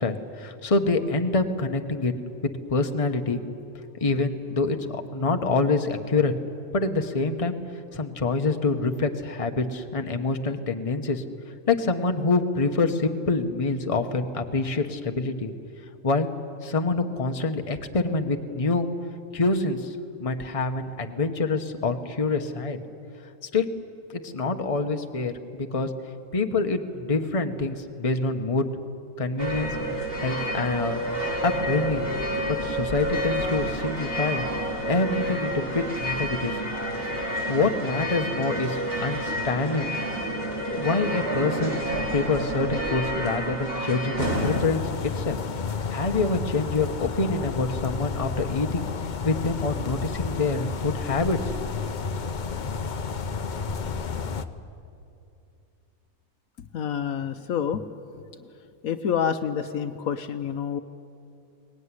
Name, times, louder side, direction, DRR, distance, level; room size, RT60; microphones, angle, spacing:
voice 1, 0.0-2.1 2.4-3.4 4.0-6.3 6.7-7.6 7.9-11.2 11.7-15.5 16.0-16.3 16.6-18.9 19.3-22.8 23.5-23.7 24.1-25.9 26.3-28.7 29.2-29.7 30.2-32.0 32.5-34.4 34.8-36.6 37.5-39.9 40.7-44.8 45.1-45.4 45.9-48.9 49.2-51.7, left 3 dB, 25° left, 6 dB, 1.1 m, -26 dB
sound 1, 29.4-44.6, right 1 dB, 40° right, 3.1 m, -29 dB
sound 2, 44.2-54.4, left 5 dB, 40° left, 0.7 m, -31 dB
voice 2, 56.7-57.8 58.8-60.8, left 8 dB, 70° left, 10 dB, 1.2 m, -27 dB
22.5 x 19.0 x 9.8 m, 2.6 s
omnidirectional pair, 1.6 m